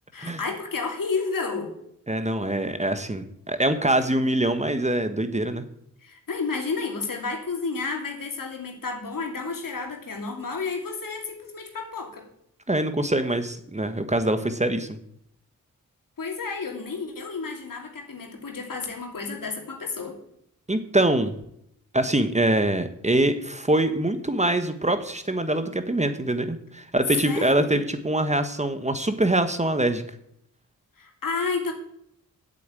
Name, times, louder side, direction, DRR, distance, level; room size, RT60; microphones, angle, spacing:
voice 1, 0.1-1.7 6.0-12.3 16.2-20.2 27.2-27.9 31.0-31.7, left 4 dB, 75° left, 2 dB, 2.9 m, -31 dB
voice 2, 2.1-5.6 12.7-15.0 20.7-21.3 21.9-30.0, right 1 dB, 20° right, 9 dB, 1.2 m, -24 dB
8.4 x 8.3 x 9.0 m, 0.73 s
cardioid pair, 65°, 33 cm